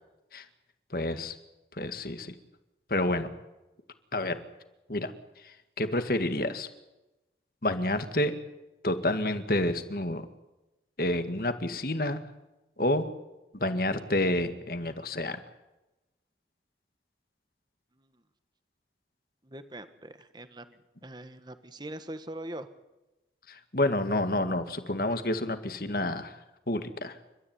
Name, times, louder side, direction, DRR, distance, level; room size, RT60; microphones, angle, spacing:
voice 1, 0.9-1.4 1.7-2.3 2.9-3.3 4.1-4.4 4.9-5.1 5.4-6.7 7.6-8.3 8.8-10.3 11.0-12.2 12.8-13.1 13.5-15.4 23.5-26.4 26.7-27.2, left 1 dB, 55° left, 9 dB, 2.0 m, -29 dB
voice 2, 19.4-22.7, right 1 dB, 25° right, 10 dB, 1.4 m, -42 dB
30.0 x 13.5 x 9.5 m, 1.0 s
head